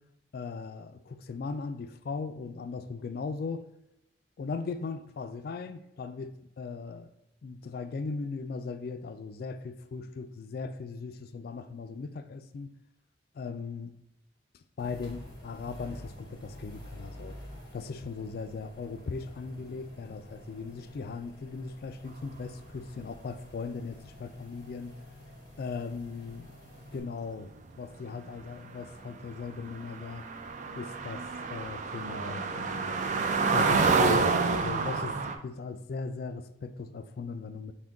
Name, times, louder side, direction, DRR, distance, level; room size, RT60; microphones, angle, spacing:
voice 1, 0.3-3.6 4.4-7.1 7.4-12.7 13.3-13.9 14.8-17.3 17.7-24.9 25.6-26.5 26.9-30.3 30.7-32.9 33.5-37.7, left 4 dB, 60° left, 0.4 m, -38 dB
sound 1, 14.8-27.0, equal, 25° left, 1.1 m, -48 dB
sound 2, 29.0-29.1 29.3-35.4, right 4 dB, 45° right, 0.4 m, -28 dB
5.9 x 2.2 x 3.7 m
head